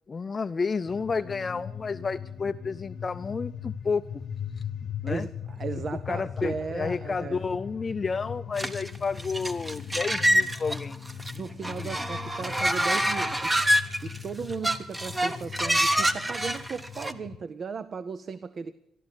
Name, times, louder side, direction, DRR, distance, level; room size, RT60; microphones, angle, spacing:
voice 1, 0.1-4.0 5.0-5.3 6.1-11.0, left 4 dB, 35° left, 0.5 m, -31 dB
sound 1, 0.8-17.4, left 7 dB, 60° left, 0.9 m, -39 dB
voice 2, 4.8-7.4 11.3-13.6 14.0-18.7, right 5 dB, 45° right, 0.6 m, -36 dB
sound 2, 8.6-11.3 11.6-14.2 14.5-17.1, equal, 15° right, 1.1 m, -26 dB
14.0 x 11.5 x 8.0 m
cardioid pair, 90°, 0 cm